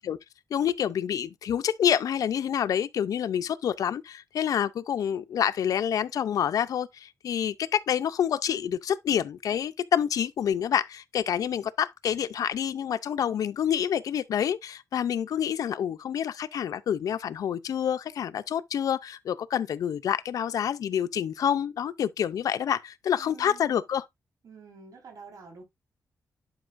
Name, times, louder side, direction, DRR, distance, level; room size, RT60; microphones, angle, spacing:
voice 1, 0.5-24.0, left 9 dB, 80° left, 0.5 m, -27 dB
voice 2, 23.1-23.9 24.4-25.6, right 5 dB, 80° right, 4.2 m, -48 dB
11.0 x 5.2 x 2.5 m
wide cardioid pair, 130°, 6 cm